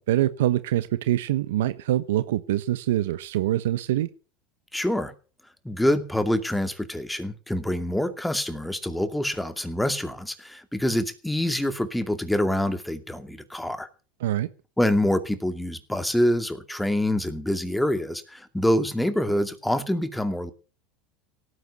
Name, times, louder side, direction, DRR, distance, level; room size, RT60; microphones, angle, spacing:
voice 1, 0.0-4.1 14.2-14.5, right 13 dB, 85° right, 12 dB, 1.1 m, -24 dB
voice 2, 4.7-5.1 5.6-13.9 14.8-20.5, left 1 dB, 5° left, 8 dB, 2.5 m, -26 dB
18.0 x 9.7 x 7.0 m, 0.36 s
supercardioid pair, 105°, 0 cm